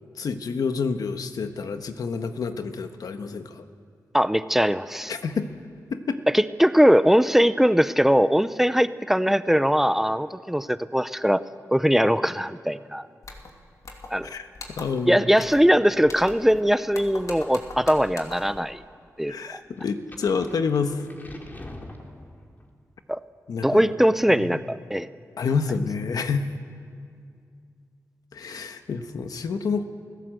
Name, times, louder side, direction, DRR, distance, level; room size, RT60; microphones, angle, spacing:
voice 1, 0.2-3.6 5.1-5.5 5.9-6.2 14.2-15.3 19.3-21.1 23.5-23.9 24.4-24.6 25.4-26.5 28.3-29.8, left 5 dB, 80° left, 8 dB, 1.3 m, -28 dB
voice 2, 4.1-5.1 6.3-11.4 11.7-13.1 14.1-14.3 15.1-18.8 19.2-19.6 23.1-23.2 23.6-25.1, equal, 5° right, 14 dB, 0.6 m, -21 dB
sound 1, 13.2-13.5 13.8-14.3 14.5-15.0 15.4-15.7 16.0-16.6 16.9-18.6, left 3 dB, 60° left, 2.7 m, -41 dB
sound 2, 19.8-22.7, left 1 dB, 30° left, 2.7 m, -43 dB
28.5 x 16.5 x 7.8 m, 2.3 s
wide cardioid pair, 85°, 6 cm